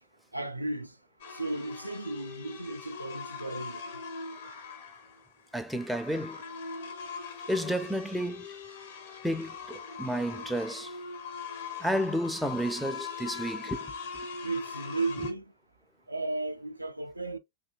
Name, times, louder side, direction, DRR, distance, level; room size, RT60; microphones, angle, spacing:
voice 1, 0.3-0.9 1.3-3.8 14.4-15.5 16.1-17.4, right 2 dB, 85° right, 0.3 m, -34 dB
sound 1, 1.2-15.3, left 5 dB, 60° left, 0.9 m, -41 dB
voice 2, 5.5-6.4 7.5-8.5 9.2-10.9 11.8-13.9, equal, 5° right, 0.3 m, -31 dB
3.1 x 2.6 x 2.9 m
figure-of-eight pair, 90°, 0 cm